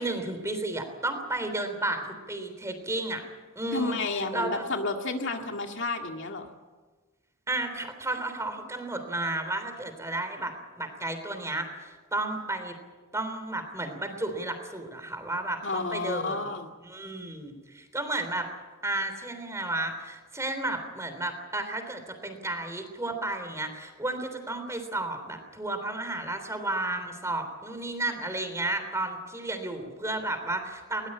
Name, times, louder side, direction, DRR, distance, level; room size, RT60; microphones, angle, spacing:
voice 1, 0.0-3.2 3.6-4.0 4.3-4.7 7.5-10.5 10.8-12.8 13.1-16.5 16.8-18.5 18.8-31.1, right 2 dB, 15° right, 7 dB, 3.4 m, -32 dB
voice 2, 3.7-6.5 15.6-16.7, left 3 dB, 60° left, 3 dB, 2.0 m, -31 dB
21.0 x 19.0 x 8.7 m, 1.3 s
head